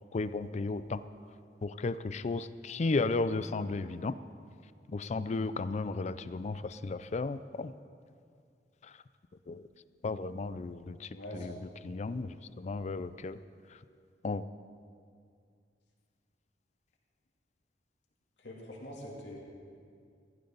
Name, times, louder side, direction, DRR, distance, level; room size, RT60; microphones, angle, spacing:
voice 1, 0.1-1.0 1.6-4.1 4.9-7.7 8.8-9.0 9.5-9.7 10.0-13.4 13.7-13.8 14.2-14.4, left 3 dB, 40° left, 14 dB, 0.4 m, -34 dB
voice 2, 11.1-11.5 12.0-12.2 18.4-19.4, left 1 dB, 75° left, -4 dB, 3.0 m, -44 dB
15.5 x 15.0 x 4.0 m, 2.3 s
head